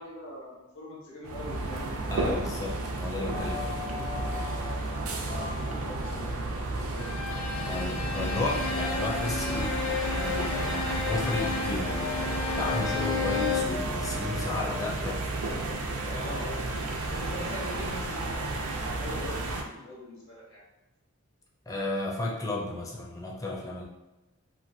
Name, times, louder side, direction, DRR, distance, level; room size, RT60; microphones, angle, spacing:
voice 1, 0.0-1.8 5.3-6.3 6.6-7.1 16.0-16.6 17.1-20.6, left 1 dB, 65° left, -6 dB, 1.3 m, -42 dB
sound 1, 1.2-19.6, right 2 dB, 90° right, 0.5 m, -32 dB
voice 2, 2.1-3.8 7.6-9.8 10.1-15.3 21.7-23.8, left 2 dB, 15° left, -3 dB, 0.5 m, -33 dB
sound 2, 3.3-15.2, left 5 dB, 40° left, 0.8 m, -40 dB
Bowed string instrument, 7.0-13.8, left 5 dB, 80° left, 0.3 m, -33 dB
2.9 x 2.4 x 2.6 m, 1.0 s
head